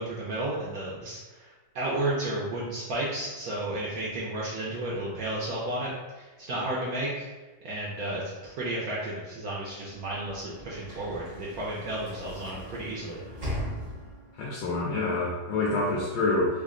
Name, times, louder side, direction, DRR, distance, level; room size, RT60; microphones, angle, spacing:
voice 1, 0.0-5.9 6.2-7.3 7.6-13.2, right 1 dB, 70° right, -5 dB, 0.9 m, -32 dB
Sliding door / Slam, 9.8-14.5, equal, 50° right, 0.3 m, -39 dB
voice 2, 14.4-16.5, left 2 dB, 80° left, -5 dB, 1.3 m, -27 dB
3.4 x 2.1 x 3.6 m, 1.2 s
omnidirectional pair, 1.9 m